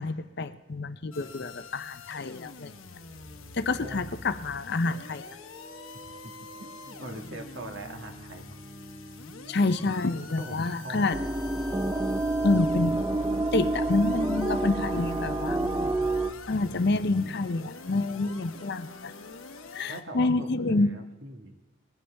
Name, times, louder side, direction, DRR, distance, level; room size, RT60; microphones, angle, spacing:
voice 1, 0.0-2.7 3.5-5.3 9.5-11.2 12.4-13.0 13.5-15.9 16.5-19.1 19.7-20.9, left 3 dB, 50° left, 12 dB, 0.6 m, -28 dB
sound 1, 1.1-20.0, left 3 dB, 85° left, 1.1 m, -46 dB
sound 2, 2.8-18.8, equal, 10° left, 1.9 m, -52 dB
voice 2, 3.8-4.2 6.0-6.3 6.6-8.6 10.4-11.2 13.9-14.0 15.5-16.4 16.7-17.0 19.9-21.6, right 1 dB, 60° right, 4 dB, 1.6 m, -43 dB
sound 3, 11.1-16.3, right 2 dB, 15° right, 0.4 m, -28 dB
21.5 x 15.5 x 3.4 m, 1.2 s
head